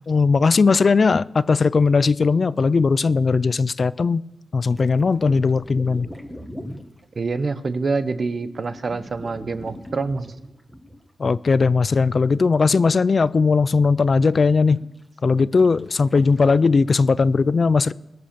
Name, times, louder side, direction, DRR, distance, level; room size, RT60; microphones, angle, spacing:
voice 1, 0.1-4.2 4.5-6.1 11.2-14.8 15.2-17.9, left 4 dB, 45° left, 0.4 m, -18 dB
sound 1, 4.6-7.0 8.2-11.8 12.2-12.3 12.7-13.0 14.7-15.0 15.6-16.6, equal, ahead, 1.7 m, -40 dB
voice 2, 7.2-10.3, right 4 dB, 45° right, 0.9 m, -26 dB
22.0 x 7.7 x 6.8 m
wide cardioid pair, 110°, 0 cm